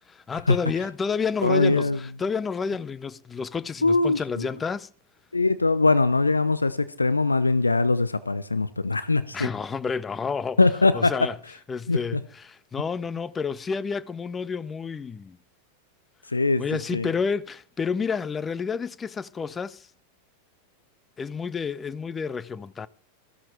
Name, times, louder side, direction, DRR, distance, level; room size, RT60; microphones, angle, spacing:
voice 1, 0.1-4.9 9.3-10.6 10.9-11.4 11.7-15.4 16.6-19.9 21.2-22.9, left 5 dB, 15° left, 0.7 m, -30 dB
voice 2, 1.4-2.0 3.8-4.5 5.3-9.5 10.6-11.1 11.9-12.2 16.3-16.6 16.9-17.1, left 3 dB, 80° left, 0.8 m, -22 dB
15.0 x 13.5 x 4.6 m
figure-of-eight pair, 90°, 0 cm